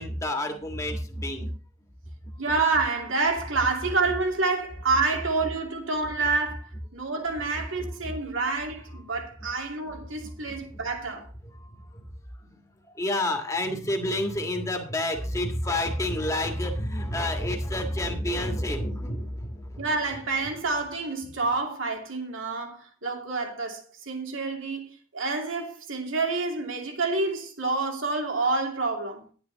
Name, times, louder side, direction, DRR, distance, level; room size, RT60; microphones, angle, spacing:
voice 1, 0.0-1.5 10.5-10.6 11.6-11.8 13.0-19.9, left 1 dB, 15° left, 1.6 m, -29 dB
voice 2, 2.4-11.3 19.8-29.2, right 3 dB, 75° right, 2.5 m, -28 dB
11.0 x 9.3 x 4.0 m
head